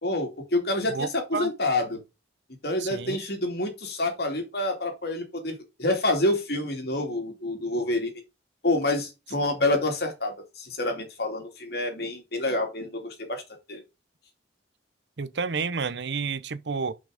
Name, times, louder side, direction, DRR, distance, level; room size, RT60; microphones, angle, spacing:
voice 1, 0.0-2.0 2.6-8.1 8.6-13.4 13.7-13.8, left 2 dB, 60° left, 2.6 m, -27 dB
voice 2, 0.9-1.5 2.8-3.2 15.2-16.9, right 5 dB, 75° right, 0.7 m, -30 dB
6.1 x 5.6 x 5.0 m
head